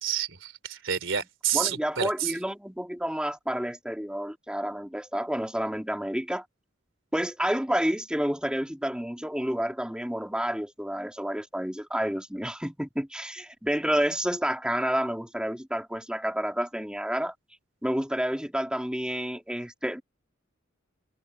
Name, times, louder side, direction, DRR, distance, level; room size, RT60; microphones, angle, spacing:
voice 1, 0.0-2.3, right 9 dB, 75° right, 3.4 m, -29 dB
voice 2, 1.5-6.4 7.1-17.3 17.8-20.0, equal, 5° right, 2.8 m, -29 dB
head